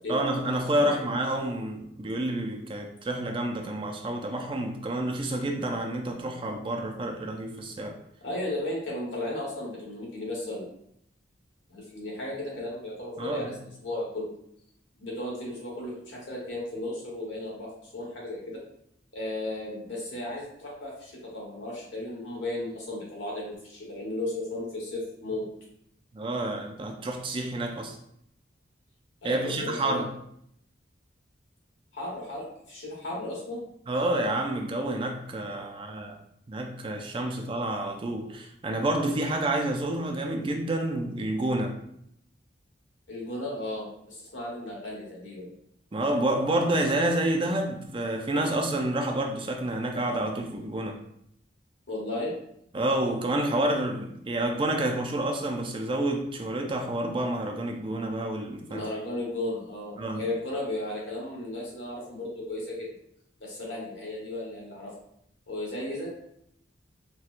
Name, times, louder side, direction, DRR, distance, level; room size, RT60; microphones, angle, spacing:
voice 1, 0.1-8.0 13.2-13.5 26.1-28.0 29.2-30.1 33.9-36.2 36.5-41.8 45.9-51.0 52.7-58.8 60.0-60.2, right 1 dB, 25° right, 0.3 m, -29 dB
voice 2, 8.2-10.7 11.7-14.3 15.0-18.6 19.1-25.5 29.2-30.0 31.9-33.6 43.1-45.5 51.9-52.3 58.7-62.9 63.4-64.9 65.5-66.1, left 1 dB, 80° left, 1.2 m, -35 dB
4.2 x 2.2 x 2.4 m
head